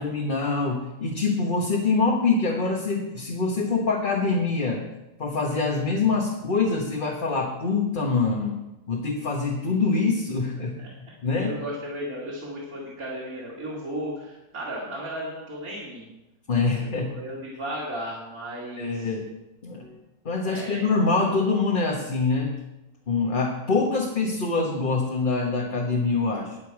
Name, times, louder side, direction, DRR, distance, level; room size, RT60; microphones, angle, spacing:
voice 1, 0.0-4.8 5.2-8.6 8.9-10.7 11.2-11.5 16.5-17.2 18.8-19.3 19.6-20.0 20.2-22.5 23.1-26.6, left 4 dB, 35° left, -1 dB, 1.4 m, -25 dB
voice 2, 10.8-16.1 17.0-19.1 20.4-20.9, equal, 70° right, -5 dB, 2.8 m, -35 dB
20.0 x 6.9 x 4.7 m, 0.99 s
omnidirectional pair, 1.6 m